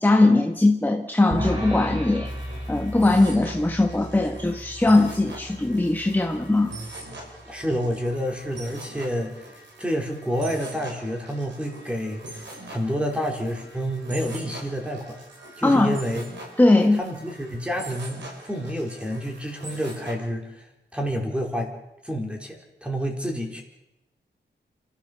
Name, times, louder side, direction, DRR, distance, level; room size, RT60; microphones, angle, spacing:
voice 1, 0.0-2.3 2.7-6.8 15.6-16.0 16.6-17.0, left 2 dB, 10° left, 3 dB, 1.4 m, -20 dB
sound 1, 1.3-7.7, equal, 35° right, 7.1 m, -35 dB
sound 2, 2.2-20.1, right 2 dB, 90° right, 6.4 m, -42 dB
voice 2, 7.5-9.3 9.8-12.2 12.7-15.2 15.6-16.2 17.0-20.7 20.9-21.7 22.0-23.6, equal, 5° right, 1 dB, 4.2 m, -29 dB
30.0 x 14.0 x 6.8 m, 0.90 s
wide cardioid pair, 140°, 18 cm